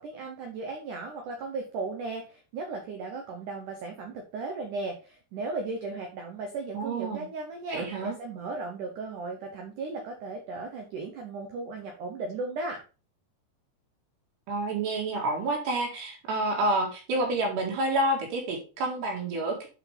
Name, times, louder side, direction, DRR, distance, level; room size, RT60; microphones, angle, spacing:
voice 1, 0.0-12.8, right 3 dB, 85° right, 3 dB, 1.7 m, -36 dB
voice 2, 6.7-7.3 7.7-8.2 14.5-19.7, right 2 dB, 70° right, 1 dB, 3.9 m, -29 dB
9.4 x 4.9 x 3.4 m, 0.33 s
omnidirectional pair, 5.2 m